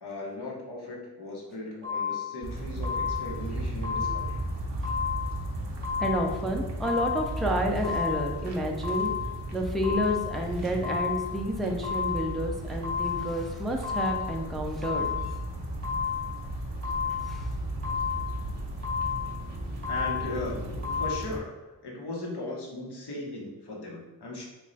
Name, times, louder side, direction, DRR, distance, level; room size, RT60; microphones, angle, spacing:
voice 1, 0.0-4.4 19.9-20.6 20.9-24.4, left 2 dB, 70° left, -2 dB, 0.9 m, -37 dB
sound 1, 1.8-2.4 2.8-3.4 3.8-4.4 4.8-5.4 5.8-6.4 6.8-7.4 7.8-8.4 8.8-9.4 9.8-10.4 10.8-11.4 11.8-12.4 12.8-13.4 13.8-14.4 14.8-15.4 15.8-16.4 16.8-17.4 17.8-18.4 18.8-19.4 19.8-20.4 20.8-21.1, left 7 dB, 20° left, 1.1 m, -32 dB
sound 2, 2.4-21.4, right 1 dB, 85° right, 0.7 m, -35 dB
voice 2, 6.0-9.1 9.5-15.1 17.3-17.5, equal, ahead, 1 dB, 0.4 m, -30 dB
3.1 x 2.2 x 3.9 m, 1.1 s
wide cardioid pair, 75°, 41 cm